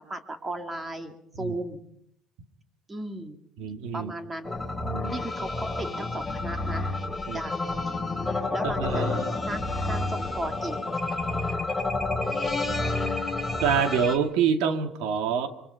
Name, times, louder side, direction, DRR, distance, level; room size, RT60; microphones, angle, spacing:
voice 1, 0.0-1.8 2.9-3.4 3.9-4.7 5.1-6.9 7.3-7.5 7.9-8.0 8.5-10.8, right 1 dB, 20° right, 7 dB, 2.5 m, -36 dB
voice 2, 3.6-4.1 4.8-5.1 7.3-7.4 8.6-9.3 13.6-15.5, right 7 dB, 80° right, 8 dB, 2.2 m, -26 dB
sound 1, 4.4-14.2, left 2 dB, 5° left, 4.0 m, -29 dB
25.0 x 24.0 x 5.8 m, 0.73 s
cardioid pair, 120°, 0 cm